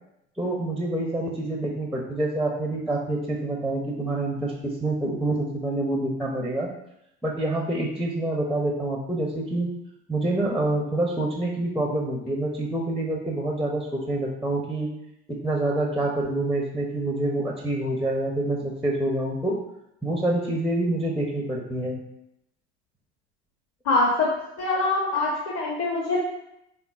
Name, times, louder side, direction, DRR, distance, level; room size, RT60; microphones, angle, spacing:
voice 1, 0.4-6.7 7.2-9.7 10.1-14.9 15.4-19.6 20.0-22.0, right 2 dB, ahead, -1 dB, 0.5 m, -27 dB
voice 2, 23.8-24.3 24.6-26.2, left 2 dB, 40° left, -3 dB, 0.9 m, -24 dB
4.4 x 3.5 x 2.3 m, 0.83 s
hypercardioid pair, 80°, 36 cm